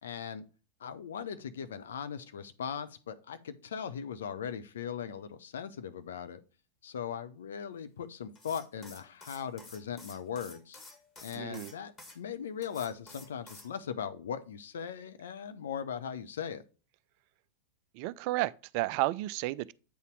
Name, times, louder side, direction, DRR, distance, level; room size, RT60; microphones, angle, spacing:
voice 1, 0.0-0.4 0.8-6.4 6.8-10.8 11.2-16.6, left 7 dB, 65° left, 0.7 m, -39 dB
sound 1, 8.3-12.2 12.6-13.7, left 2 dB, 20° left, 1.9 m, -51 dB
voice 2, 11.3-11.7 17.9-19.7, right 18 dB, 45° right, 0.3 m, -32 dB
8.5 x 4.1 x 4.5 m
figure-of-eight pair, 90°, 0 cm